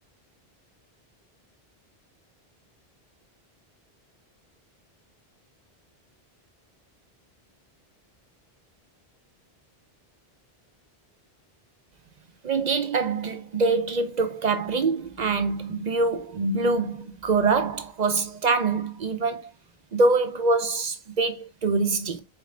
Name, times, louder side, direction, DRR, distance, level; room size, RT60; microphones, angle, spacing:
voice 1, 12.4-19.5 19.9-22.2, right 3 dB, 50° right, 0.6 m, -24 dB
4.2 x 3.8 x 3.2 m
omnidirectional pair, 1.0 m